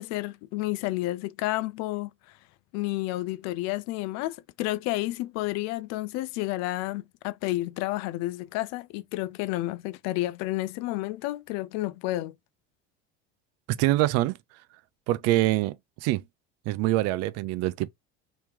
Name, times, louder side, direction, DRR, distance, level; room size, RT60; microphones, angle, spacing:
voice 1, 0.0-2.1 2.7-12.3, left 18 dB, 60° left, 0.5 m, -30 dB
voice 2, 13.7-14.4 15.1-15.8 16.0-16.2 16.7-17.9, right 16 dB, 55° right, 0.5 m, -24 dB
3.1 x 2.9 x 3.5 m
supercardioid pair, 135°, 30 cm